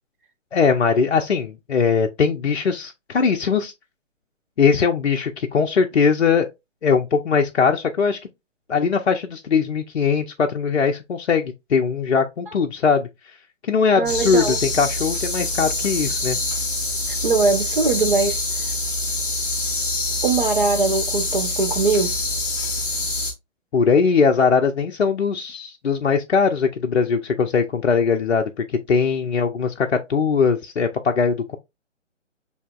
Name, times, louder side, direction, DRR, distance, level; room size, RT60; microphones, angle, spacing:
voice 1, 0.5-3.7 4.6-6.5 6.8-8.2 8.7-13.1 13.6-16.4 23.7-31.6, left 5 dB, 65° left, 0.5 m, -20 dB
voice 2, 13.9-14.6 17.2-18.4 20.2-22.2, right 4 dB, 40° right, 0.8 m, -21 dB
sound 1, 14.0-23.3, left 2 dB, 15° left, 0.7 m, -25 dB
6.5 x 2.8 x 2.2 m
figure-of-eight pair, 135°, 38 cm